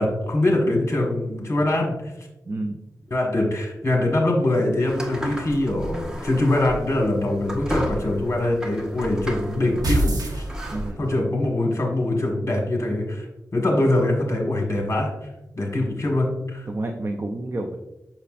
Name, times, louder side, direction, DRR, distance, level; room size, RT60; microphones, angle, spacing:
voice 1, 0.0-2.0 3.1-10.4 11.0-13.3 13.5-15.1 15.5-16.7, left 1 dB, 40° left, 0 dB, 1.6 m, -23 dB
voice 2, 2.5-2.8 10.7-11.1 16.7-17.8, right 2 dB, 40° right, 4 dB, 0.5 m, -29 dB
sound 1, 4.9-10.9, equal, 10° right, 1.0 m, -33 dB
sound 2, 9.8-11.1, right 1 dB, 80° right, 1.0 m, -24 dB
6.8 x 5.8 x 2.5 m, 0.97 s
wide cardioid pair, 95°, 6 cm